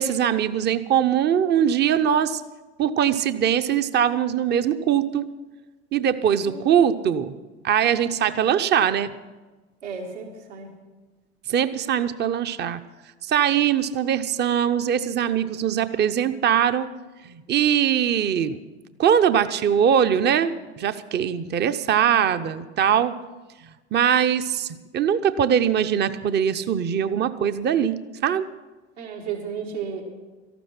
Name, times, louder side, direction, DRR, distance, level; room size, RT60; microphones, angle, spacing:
voice 1, 0.0-2.4 2.8-5.3 5.9-7.3 7.6-9.1 11.5-12.8 13.3-16.9 17.2-18.6 19.0-23.1 23.9-28.5, right 9 dB, 30° right, 11 dB, 0.7 m, -22 dB
voice 2, 6.4-7.1 9.8-10.7 29.0-30.0, right 6 dB, 75° right, 0 dB, 2.5 m, -34 dB
14.0 x 12.5 x 5.9 m, 1.2 s
hypercardioid pair, 80°, 34 cm